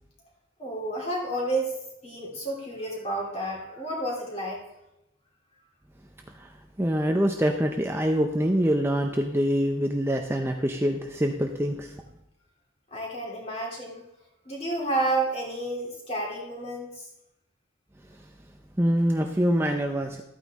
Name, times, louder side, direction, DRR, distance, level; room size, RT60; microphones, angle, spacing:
voice 1, 0.6-1.8 2.0-4.6 12.9-14.0 14.4-17.1, right 2 dB, 30° left, -2 dB, 2.9 m, -30 dB
voice 2, 6.3-12.0 18.8-20.2, equal, 10° right, 3 dB, 0.5 m, -25 dB
13.0 x 9.1 x 3.6 m, 0.87 s
head